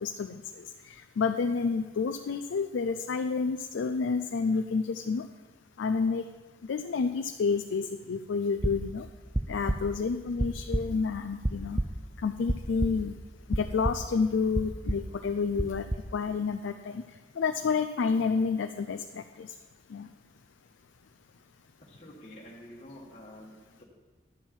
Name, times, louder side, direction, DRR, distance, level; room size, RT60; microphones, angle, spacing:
voice 1, 0.0-5.2 5.8-6.3 6.7-9.1 9.5-11.8 12.2-13.2 13.5-15.9 16.1-17.0 17.4-19.5 19.9-20.1, left 5 dB, 90° left, 7 dB, 0.4 m, -29 dB
sound 1, 8.6-13.2 13.5-14.3 14.5-15.2 15.6-16.2, right 1 dB, 10° right, 0.3 m, -31 dB
voice 2, 21.8-23.8, left 1 dB, 35° left, -5 dB, 1.4 m, -48 dB
11.0 x 7.3 x 4.4 m, 1.3 s
head